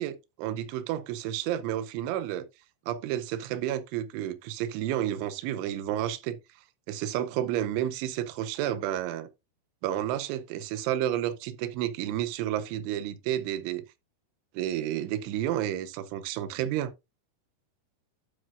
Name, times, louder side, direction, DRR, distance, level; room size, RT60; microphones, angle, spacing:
voice 1, 0.0-2.5 2.9-6.4 6.9-9.3 9.8-13.8 14.5-16.9, right 12 dB, 80° right, 2.9 m, -31 dB
12.0 x 6.3 x 2.5 m
omnidirectional pair, 6.0 m